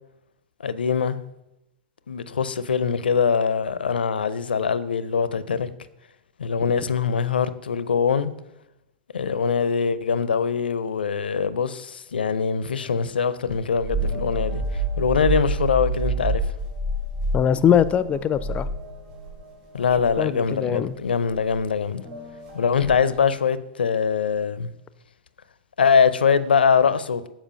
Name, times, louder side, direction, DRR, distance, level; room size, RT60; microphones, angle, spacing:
voice 1, 0.6-1.2 2.1-5.7 6.4-8.3 9.1-14.6 15.0-16.4 19.7-22.0 22.5-24.7 25.8-27.3, left 6 dB, 80° left, 0.5 m, -23 dB
sound 1, 13.5-19.4 19.8-20.1 21.3-21.6 22.8-23.2, right 2 dB, 35° right, 3.5 m, -28 dB
sound 2, 14.0-23.2, left 1 dB, 70° right, 3.1 m, -47 dB
voice 2, 17.3-18.7 20.2-20.9, left 9 dB, 25° left, 0.4 m, -21 dB
7.4 x 5.0 x 6.2 m
hypercardioid pair, 105°, 5 cm